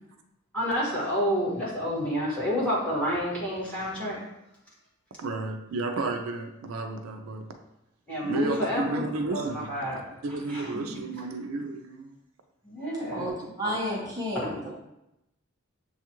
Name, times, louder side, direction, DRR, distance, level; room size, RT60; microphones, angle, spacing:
voice 1, 0.5-4.2 8.1-10.0 10.5-10.7 12.6-13.3 13.6-13.9 14.3-14.5, equal, 5° left, -9 dB, 1.5 m, -29 dB
voice 2, 5.2-7.5 8.2-9.7 10.2-12.2, right 2 dB, 80° right, 5 dB, 0.4 m, -32 dB
voice 3, 13.1-14.7, equal, 15° right, -5 dB, 0.8 m, -32 dB
6.9 x 2.4 x 2.9 m, 0.87 s
head